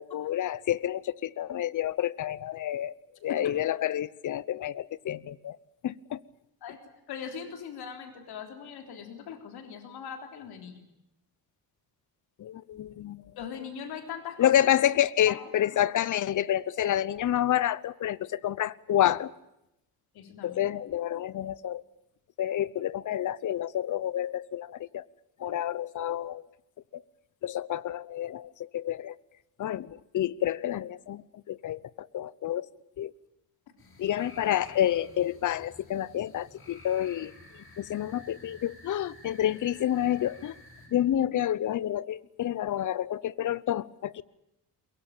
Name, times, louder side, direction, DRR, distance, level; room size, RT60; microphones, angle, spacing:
voice 1, 0.0-2.9 3.2-5.6 5.8-6.2 12.4-13.2 14.4-19.3 20.4-21.8 22.4-25.0 25.4-26.4 26.9-27.0 27.4-29.2 29.6-32.7 33.0-33.1 34.0-37.3 37.8-40.5 40.9-44.2, left 11 dB, 55° left, 0.9 m, -29 dB
voice 2, 7.1-10.8 13.4-14.5 15.3-15.4 15.7-15.8 20.1-20.6, left 7 dB, 85° left, 3.7 m, -40 dB
sound 1, 33.8-40.9, left 2 dB, 35° left, 6.7 m, -52 dB
22.5 x 22.5 x 9.0 m
cardioid pair, 150°, 37 cm